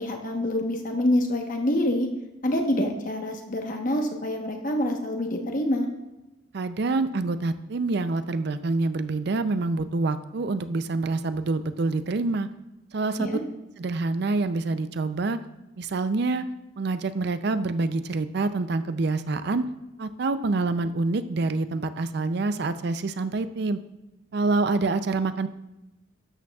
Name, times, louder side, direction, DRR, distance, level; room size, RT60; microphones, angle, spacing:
voice 1, 0.0-2.1 2.4-5.9 13.2-13.4, left 1 dB, 45° left, 3 dB, 1.1 m, -26 dB
voice 2, 6.5-12.5 12.9-13.3 13.8-15.4 15.8-16.5 16.8-19.7 20.0-23.8 24.3-25.5, right 3 dB, 60° right, 12 dB, 0.5 m, -26 dB
12.5 x 8.6 x 2.3 m, 1.0 s
head